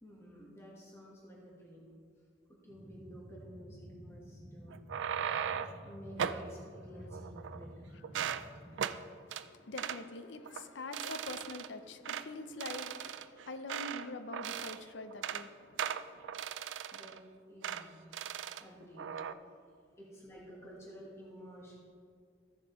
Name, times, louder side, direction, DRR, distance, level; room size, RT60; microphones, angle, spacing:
voice 1, 0.0-1.9 2.5-4.8 5.8-8.0 16.9-17.2 17.5-18.0 18.6-19.6 20.0-21.8, equal, 15° left, 1.3 m, -52 dB
sound 1, 2.7-8.7, equal, 5° right, 1.3 m, -51 dB
sound 2, 4.7-5.8 6.2-6.5 7.1-7.7 8.0-8.5 8.8-9.0 9.3-9.5 9.8-10.0 10.5-10.6 10.9-11.7 12.1-12.3 12.6-14.1 14.3-14.8 15.1-15.5 15.8-17.2 17.6-17.8 18.1-18.6 19.0-19.3, right 8 dB, 85° right, 0.4 m, -38 dB
voice 2, 7.9-16.4, left 3 dB, 75° left, 0.6 m, -46 dB
14.5 x 7.2 x 3.0 m
head